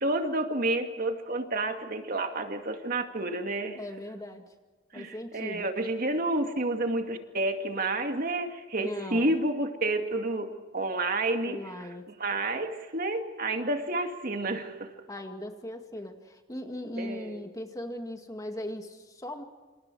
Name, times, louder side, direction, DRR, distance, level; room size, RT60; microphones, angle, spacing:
voice 1, 0.0-3.8 4.9-11.6 12.2-14.9 17.0-17.4, right 2 dB, 45° right, 5 dB, 2.3 m, -30 dB
voice 2, 3.7-4.5 4.9-5.7 8.8-9.3 11.4-12.1 15.1-19.4, left 1 dB, 20° left, 5 dB, 2.1 m, -39 dB
28.0 x 27.5 x 4.8 m, 1.3 s
head